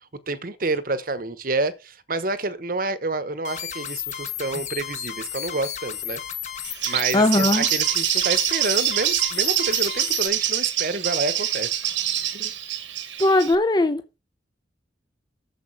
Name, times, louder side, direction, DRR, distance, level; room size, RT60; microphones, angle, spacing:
voice 1, 0.3-6.2 6.9-11.7 12.3-12.5, right 3 dB, 45° right, 1.0 m, -28 dB
sound 1, 3.5-10.3, left 10 dB, 40° left, 1.3 m, -33 dB
Bird, 6.6-13.5, right 11 dB, 75° right, 1.3 m, -25 dB
voice 2, 7.1-7.7 13.2-14.2, left 1 dB, 20° left, 0.5 m, -19 dB
9.6 x 7.3 x 4.5 m
head